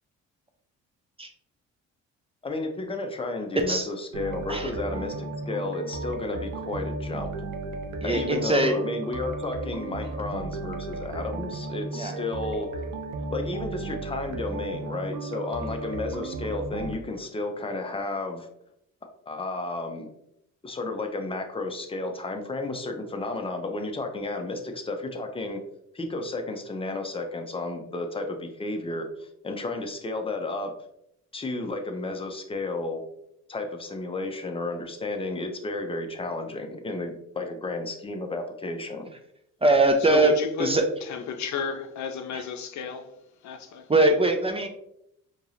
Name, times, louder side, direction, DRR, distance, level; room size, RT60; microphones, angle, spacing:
voice 1, 2.4-7.3 8.0-12.9 13.3-18.5 19.3-20.1 20.6-25.6 25.9-30.7 31.3-33.0 33.5-39.1, left 2 dB, 20° left, 0.7 m, -32 dB
voice 2, 3.6-3.9 4.5-4.7 8.0-8.8 11.9-12.1 39.6-40.9 42.3-42.4 43.9-44.7, right 2 dB, 20° right, 0.5 m, -22 dB
sound 1, 4.1-16.9, right 3 dB, 80° right, 0.7 m, -34 dB
voice 3, 40.1-40.7 41.1-43.1 43.4-43.9, left 6 dB, 65° left, 0.7 m, -32 dB
4.6 x 2.9 x 2.6 m
cardioid pair, 90°, 30 cm